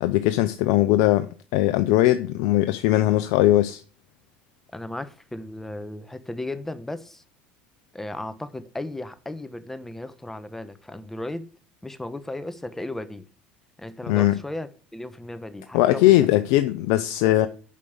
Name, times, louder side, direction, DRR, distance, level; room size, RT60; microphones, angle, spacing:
voice 1, 0.0-3.8 14.1-14.4 15.7-17.5, left 15 dB, 75° left, 0.6 m, -20 dB
voice 2, 4.7-7.2 7.9-11.5 11.8-13.2 13.8-16.1, left 1 dB, 10° left, 1.1 m, -35 dB
8.5 x 5.3 x 6.9 m
supercardioid pair, 90°, 4 cm